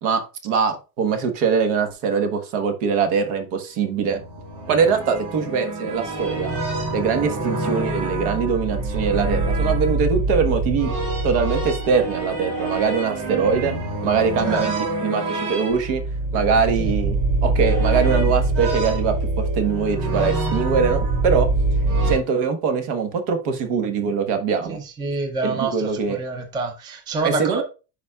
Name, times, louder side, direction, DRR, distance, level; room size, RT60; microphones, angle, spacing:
voice 1, 0.0-4.2 4.7-6.6 6.9-10.9 11.2-16.0 16.3-21.5 22.0-24.8 25.4-26.2 27.2-27.6, right 6 dB, 70° right, 1.4 m, -22 dB
sound 1, 3.9-22.2, right 2 dB, 85° right, 3.1 m, -24 dB
voice 2, 24.7-27.6, right 3 dB, 10° right, 0.4 m, -27 dB
10.0 x 4.2 x 2.4 m
cardioid pair, 165°, 45 cm